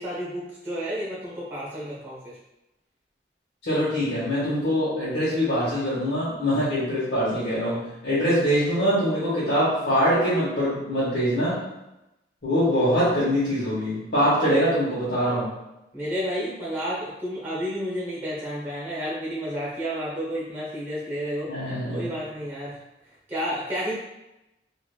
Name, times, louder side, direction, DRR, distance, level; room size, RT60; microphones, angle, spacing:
voice 1, 0.0-2.4 15.9-21.5 21.9-22.8 23.3-23.9, equal, 10° right, -7 dB, 1.1 m, -31 dB
voice 2, 3.6-11.6 12.4-15.5 21.5-22.1, equal, 90° left, -10 dB, 1.0 m, -23 dB
3.3 x 2.5 x 2.4 m, 0.92 s
head